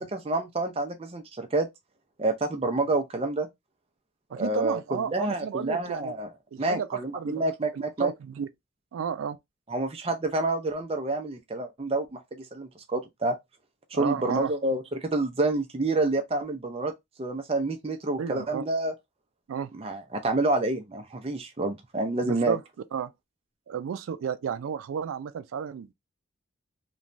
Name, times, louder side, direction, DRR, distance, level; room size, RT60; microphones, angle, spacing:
voice 1, 0.0-1.7 2.2-3.5 4.4-6.3 6.6-8.1 9.7-13.4 13.9-16.9 17.2-18.9 19.8-22.6, right 2 dB, 30° right, 0.5 m, -28 dB
voice 2, 4.3-6.1 6.5-7.4 7.7-8.5 8.9-9.4 13.9-14.5 18.2-18.6 19.5-19.7 22.2-22.6 22.9-23.1 23.7-25.9, right 7 dB, 85° right, 0.3 m, -32 dB
3.1 x 2.2 x 2.5 m
head